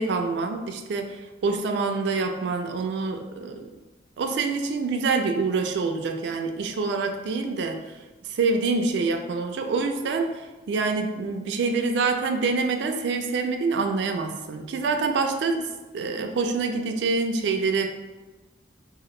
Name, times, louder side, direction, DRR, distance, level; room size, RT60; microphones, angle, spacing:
voice 1, 0.0-3.7 4.2-7.8 8.2-10.3 10.7-15.7 15.9-17.9, right 4 dB, 65° right, 4 dB, 0.3 m, -26 dB
2.8 x 2.4 x 3.1 m, 1.1 s
head